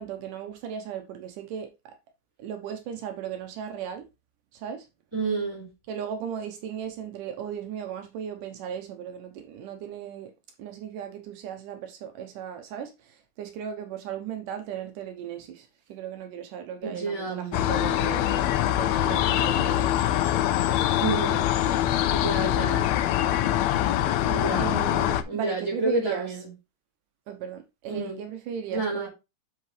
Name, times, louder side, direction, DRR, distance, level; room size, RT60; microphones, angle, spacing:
voice 1, 0.0-1.7 2.4-4.0 4.5-4.8 5.9-10.3 10.6-12.9 13.4-19.9 23.7-23.9 24.6-26.3 27.3-29.1, right 8 dB, 80° right, 2.5 m, -36 dB
voice 2, 5.1-5.7 16.8-17.5 21.0-21.5 22.1-22.9 24.2-24.7 25.3-26.5 27.9-28.2 28.7-29.1, right 3 dB, 10° right, 3.9 m, -30 dB
sound 1, 17.5-25.2, left 12 dB, 90° left, 1.5 m, -24 dB
7.6 x 5.8 x 3.2 m
omnidirectional pair, 3.8 m